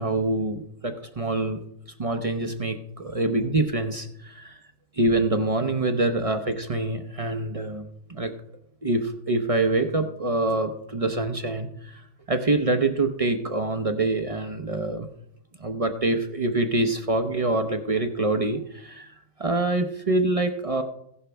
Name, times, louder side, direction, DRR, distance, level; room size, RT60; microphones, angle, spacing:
voice 1, 0.0-1.6 2.0-4.6 4.9-7.8 8.1-8.3 8.8-15.1 15.6-20.8, right 2 dB, 50° right, 6 dB, 0.4 m, -25 dB
16.0 x 11.5 x 3.4 m, 0.75 s
omnidirectional pair, 1.8 m